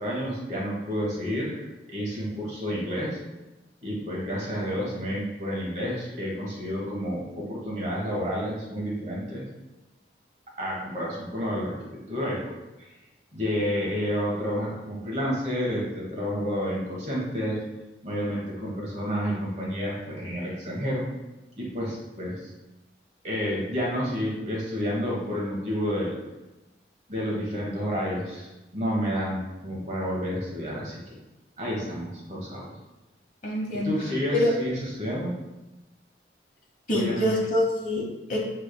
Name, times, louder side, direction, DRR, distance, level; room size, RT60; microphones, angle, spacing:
voice 1, 0.0-1.6 1.9-3.2 3.8-9.4 10.6-11.8 12.1-12.6 13.3-17.6 18.0-21.0 21.6-22.5 23.2-26.2 27.1-31.2 31.6-32.7 33.8-35.3 36.9-37.3, equal, 40° right, -3 dB, 1.2 m, -30 dB
voice 2, 33.4-33.9 34.3-34.5 36.9-38.4, left 1 dB, 40° left, -2 dB, 1.0 m, -25 dB
7.2 x 3.3 x 2.2 m, 1.0 s
head